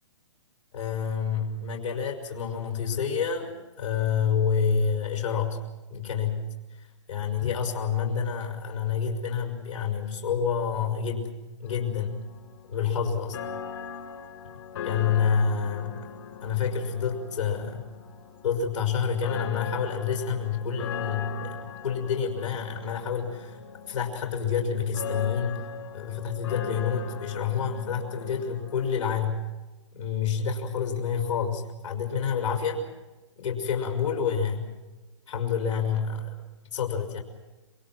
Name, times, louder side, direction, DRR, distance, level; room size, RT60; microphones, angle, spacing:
voice 1, 0.7-5.6 5.9-6.5 6.8-11.3 11.6-12.2 12.7-13.4 14.8-16.0 16.4-17.9 18.4-23.6 23.9-25.7 25.9-29.4 29.9-32.8 33.4-34.7 35.3-36.4 36.7-37.2, left 6 dB, 80° left, 2 dB, 5.9 m, -28 dB
sound 1, 11.6-29.3, left 7 dB, 60° left, 4.4 m, -40 dB
27.5 x 24.5 x 6.2 m, 1.2 s
hypercardioid pair, 130°, 16 cm